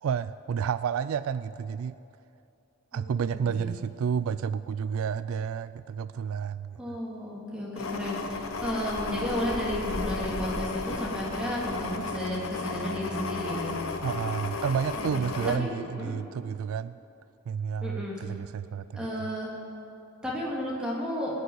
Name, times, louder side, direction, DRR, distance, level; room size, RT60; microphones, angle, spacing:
voice 1, 0.0-2.0 2.9-7.0 14.0-17.0 17.5-18.9, right 7 dB, 70° right, 15 dB, 0.3 m, -30 dB
voice 2, 2.9-3.7 6.8-13.8 15.0-15.7 16.0-16.1 17.8-18.2 18.9-19.5 20.2-21.3, equal, 5° right, -5 dB, 2.8 m, -33 dB
sound 1, 7.8-15.6, left 3 dB, 70° left, 1.1 m, -34 dB
19.5 x 6.6 x 9.6 m, 2.8 s
head